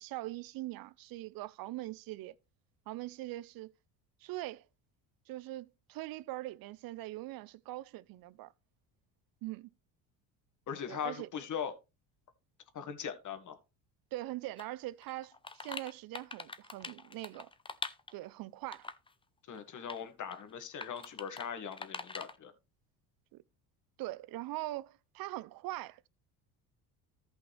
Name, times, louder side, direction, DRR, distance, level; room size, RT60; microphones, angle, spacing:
voice 1, 0.0-2.4 2.9-3.7 4.2-4.7 5.3-8.5 9.4-9.7 10.9-11.3 14.1-17.5 18.1-18.9 23.3-23.4 24.0-26.1, right 17 dB, 55° right, 0.7 m, -42 dB
voice 2, 10.7-11.7 12.7-13.6 19.5-22.5, left 7 dB, 45° left, 1.9 m, -40 dB
sound 1, 14.6-14.7 15.0-18.3 18.7-19.1 19.6-20.0 20.3-20.4 20.8-21.5 21.7-22.4, left 3 dB, 10° left, 0.7 m, -43 dB
13.5 x 5.7 x 3.3 m
supercardioid pair, 85°, 42 cm